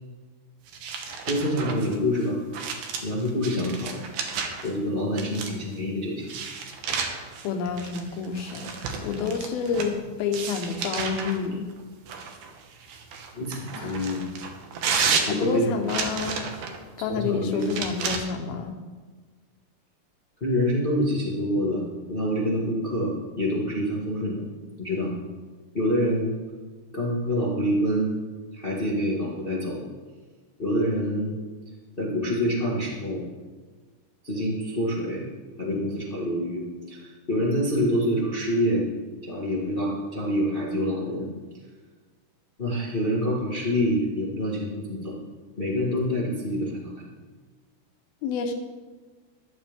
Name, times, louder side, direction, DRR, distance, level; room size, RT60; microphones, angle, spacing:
sound 1, 0.7-4.7 5.2-5.7 6.2-9.9 10.3-11.4 12.1-16.8 17.6-18.2, right 5 dB, 65° right, 2.6 m, -32 dB
voice 1, 1.2-2.4 3.0-4.0 4.6-6.3 8.4-8.6 13.3-14.3 15.3-15.8 17.0-17.6 20.4-24.4 24.8-25.1 25.7-26.3 26.9-28.1 28.5-29.9 30.6-31.3 32.0-33.2 34.2-35.2 35.6-38.8 39.2-41.3 42.6-45.1 45.6-47.0, equal, 60° left, -5 dB, 0.5 m, -26 dB
voice 2, 7.4-11.7 13.7-14.1 15.3-16.5 17.0-18.8 48.2-48.5, left 5 dB, 75° left, 5 dB, 2.8 m, -29 dB
14.0 x 11.5 x 3.6 m, 1.4 s
omnidirectional pair, 4.7 m